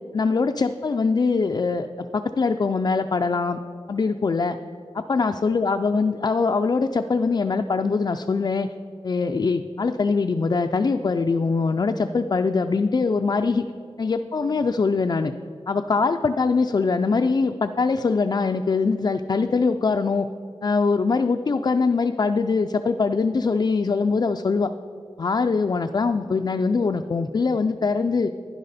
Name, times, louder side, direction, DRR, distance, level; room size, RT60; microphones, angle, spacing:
voice 1, 0.1-3.6 3.9-4.6 4.9-8.7 9.0-13.6 14.0-15.3 15.7-20.3 20.6-24.7 25.2-28.3, left 4 dB, 40° left, 5 dB, 0.4 m, -22 dB
11.5 x 10.5 x 4.1 m, 2.5 s
wide cardioid pair, 110°, 10 cm